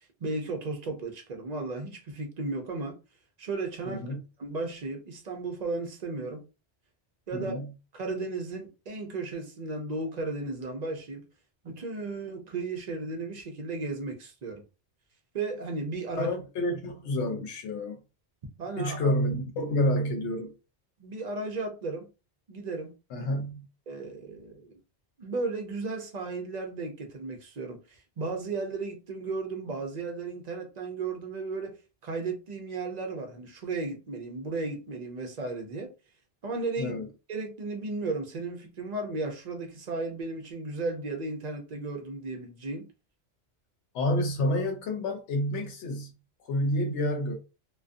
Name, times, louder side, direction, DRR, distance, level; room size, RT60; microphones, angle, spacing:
voice 1, 0.2-3.0 3.4-4.0 4.4-6.4 7.3-7.6 7.9-11.2 11.6-14.6 15.3-16.3 18.6-19.1 21.0-22.1 22.5-22.9 23.9-24.8 25.2-31.8 32.0-35.9 36.4-36.9 37.3-42.9, right 3 dB, 50° right, 0.5 m, -34 dB
voice 2, 3.9-4.2 7.3-7.7 16.2-18.0 18.8-20.5 23.1-23.6 36.8-37.1 43.9-46.1 46.4-47.3, left 1 dB, 85° left, 0.9 m, -29 dB
2.4 x 2.3 x 2.4 m
omnidirectional pair, 1.1 m